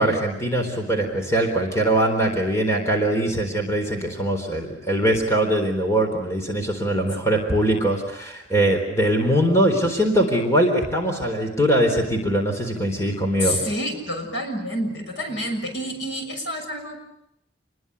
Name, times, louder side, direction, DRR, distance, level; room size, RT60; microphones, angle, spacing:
voice 1, 0.0-13.6, right 1 dB, 15° left, 3 dB, 3.9 m, -22 dB
voice 2, 13.4-17.0, equal, 70° left, 4 dB, 6.7 m, -28 dB
28.0 x 21.5 x 8.1 m, 0.79 s
head